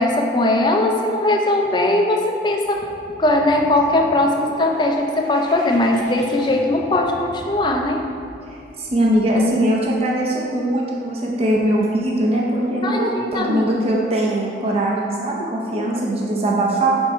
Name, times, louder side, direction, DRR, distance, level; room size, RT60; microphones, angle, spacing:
voice 1, 0.0-2.9 3.2-8.0 12.8-13.7, left 1 dB, 25° left, 2 dB, 0.4 m, -19 dB
sound 1, 2.6-10.2, right 1 dB, 70° right, 1.0 m, -39 dB
voice 2, 8.8-17.0, right 1 dB, 30° right, -3 dB, 0.6 m, -20 dB
5.8 x 4.4 x 4.3 m, 2.6 s
head